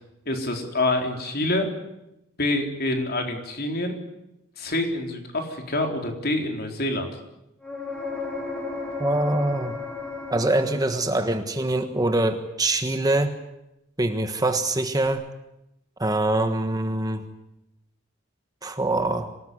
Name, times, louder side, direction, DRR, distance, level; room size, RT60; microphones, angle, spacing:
voice 1, 0.3-1.7 2.4-3.9 4.6-7.1, left 2 dB, 45° left, 4 dB, 4.1 m, -26 dB
sound 1, 7.6-11.4 15.1-15.2, left 3 dB, 5° left, 5.9 m, -34 dB
voice 2, 9.0-9.7 10.3-13.4 14.0-15.2 16.0-17.2 18.6-19.3, right 2 dB, 20° right, 7 dB, 1.4 m, -24 dB
25.5 x 18.5 x 9.8 m, 0.89 s
head